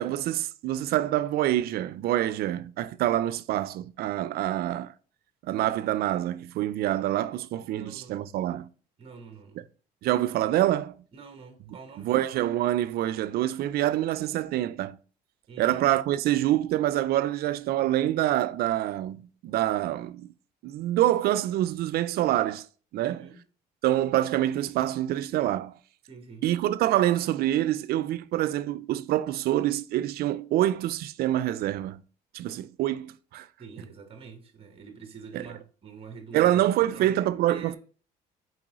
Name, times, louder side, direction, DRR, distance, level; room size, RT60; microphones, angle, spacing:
voice 1, 0.0-4.9 5.5-8.7 10.0-11.0 12.0-15.0 15.6-20.3 20.6-22.7 22.9-23.3 23.8-25.7 26.4-32.0 32.3-33.5 35.3-35.5 36.3-37.8, right 13 dB, 65° right, 0.4 m, -26 dB
voice 2, 7.7-8.2 9.0-9.7 11.1-12.3 15.5-15.9 23.0-23.4 26.1-26.5 33.6-37.8, right 5 dB, 35° right, 1.1 m, -46 dB
4.7 x 3.7 x 3.0 m
cardioid pair, 110°, 17 cm